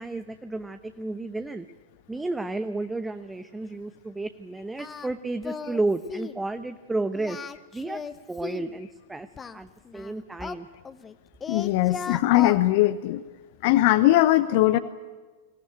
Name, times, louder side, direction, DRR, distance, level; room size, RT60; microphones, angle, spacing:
voice 1, 0.0-1.7 2.1-7.4 7.7-8.0 8.3-9.3 9.5-10.7, right 2 dB, 10° right, 9 dB, 0.9 m, -32 dB
Singing, 4.8-5.1 5.4-5.8 6.1-6.4 7.1-8.7 9.4-11.1 11.4-12.6, left 6 dB, 20° left, 1.1 m, -36 dB
voice 2, 11.5-13.2 13.6-14.8, left 15 dB, 50° left, 14 dB, 0.8 m, -20 dB
24.5 x 18.0 x 9.8 m, 1.3 s
figure-of-eight pair, 90°, 0 cm